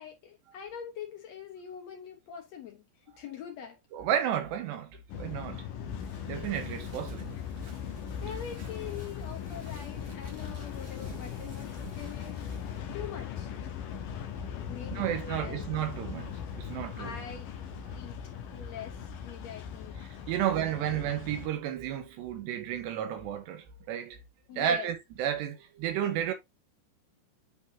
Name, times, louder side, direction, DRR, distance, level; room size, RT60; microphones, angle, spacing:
voice 1, 0.0-3.8 8.2-12.5 12.9-13.5 14.7-15.6 16.9-18.2 18.5-20.0 20.4-20.5 20.8-21.0 24.5-24.9, left 8 dB, 90° left, 1.5 m, -44 dB
voice 2, 3.9-5.7 6.3-7.4 14.9-17.2 20.3-24.2 24.6-26.3, right 10 dB, 75° right, 3.2 m, -32 dB
sound 1, 5.1-21.5, left 7 dB, 70° left, 2.2 m, -39 dB
sound 2, 5.9-12.9, right 3 dB, 55° right, 1.2 m, -53 dB
10.5 x 4.1 x 2.8 m
omnidirectional pair, 5.1 m